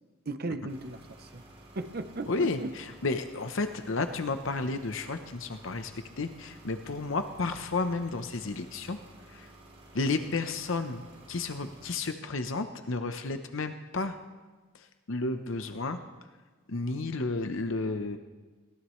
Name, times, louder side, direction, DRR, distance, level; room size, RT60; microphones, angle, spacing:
voice 1, 0.3-1.4 1.7-2.8, right 2 dB, 45° right, 10 dB, 0.8 m, -36 dB
sound 1, 0.7-12.0, right 1 dB, 30° right, 3.2 m, -53 dB
voice 2, 2.3-9.0 9.3-9.5 9.9-11.0 11.3-14.2 14.7-16.0 16.7-18.2, left 3 dB, 65° left, 8 dB, 0.8 m, -32 dB
22.0 x 17.5 x 3.2 m, 1.3 s
head